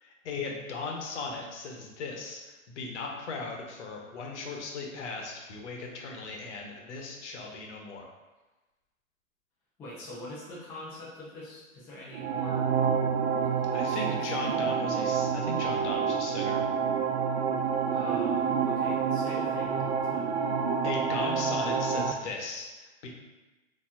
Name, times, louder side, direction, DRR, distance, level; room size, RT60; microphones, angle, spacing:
voice 1, 0.0-8.1 13.7-16.6 20.8-23.1, left 4 dB, 55° left, 0 dB, 1.1 m, -38 dB
voice 2, 9.8-12.6 13.5-15.0 17.9-20.4, left 1 dB, 5° left, -9 dB, 0.4 m, -44 dB
sound 1, 12.1-22.1, right 6 dB, 55° right, 0.4 m, -28 dB
6.8 x 2.9 x 2.4 m, 1.2 s
hypercardioid pair, 125°, 41 cm